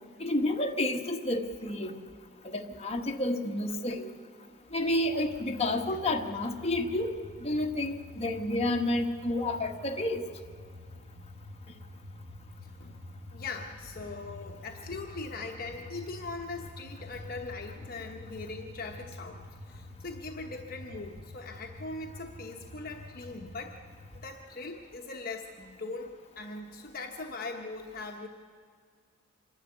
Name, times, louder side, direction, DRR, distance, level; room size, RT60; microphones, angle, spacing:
voice 1, 0.2-2.0 2.4-4.1 4.7-7.1 7.4-10.2, left 1 dB, 30° left, 3 dB, 1.3 m, -30 dB
sound 1, 4.9-24.3, left 2 dB, 50° right, 3.7 m, -48 dB
voice 2, 13.3-23.8 24.1-28.3, left 3 dB, 45° left, 2 dB, 1.0 m, -40 dB
25.5 x 11.5 x 9.6 m, 2.1 s
head